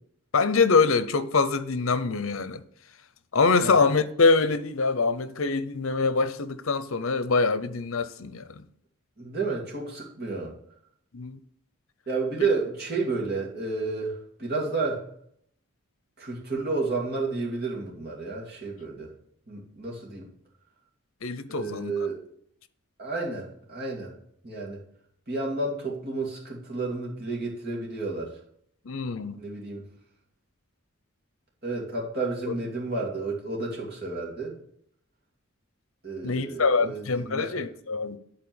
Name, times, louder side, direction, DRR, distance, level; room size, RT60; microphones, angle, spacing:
voice 1, 0.3-2.6 3.3-8.4 11.1-11.4 21.2-21.9 28.9-29.4 32.5-32.6 36.2-38.2, left 4 dB, 70° left, 0.7 m, -24 dB
voice 2, 9.2-10.5 12.1-15.0 16.2-19.1 19.5-20.3 21.5-22.2 23.0-24.2 24.4-24.8 25.3-28.4 29.4-29.8 31.6-34.6 36.0-37.6, right 3 dB, 45° right, 2.7 m, -31 dB
10.5 x 4.3 x 7.0 m
head